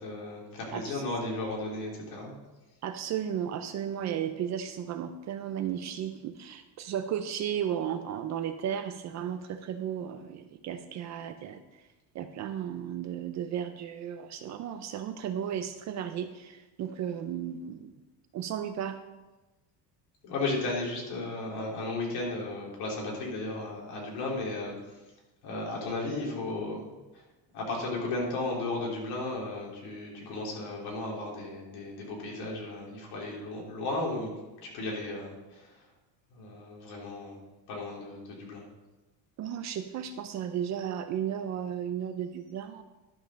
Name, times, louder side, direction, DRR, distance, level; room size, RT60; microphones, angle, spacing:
voice 1, 0.0-2.3 20.2-24.8 25.4-27.0 27.5-34.3 34.6-35.8 36.3-37.4 37.7-38.6, left 2 dB, 55° left, -2 dB, 3.4 m, -35 dB
voice 2, 0.7-1.0 2.8-11.6 12.1-17.9 18.3-19.0 39.4-42.8, right 9 dB, 40° right, 9 dB, 0.5 m, -34 dB
11.5 x 5.4 x 6.3 m, 1.1 s
cardioid pair, 175°, 44 cm